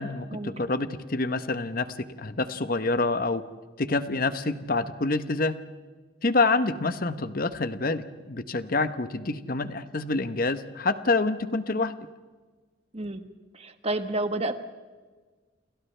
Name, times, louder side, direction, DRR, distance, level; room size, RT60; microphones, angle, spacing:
voice 1, 0.0-1.9 2.2-3.4 3.8-5.6 6.2-11.9, left 3 dB, 50° left, 11 dB, 1.0 m, -27 dB
voice 2, 12.9-13.3 13.5-14.5, right 2 dB, 35° right, 8 dB, 1.3 m, -30 dB
29.0 x 27.5 x 3.4 m, 1.4 s
head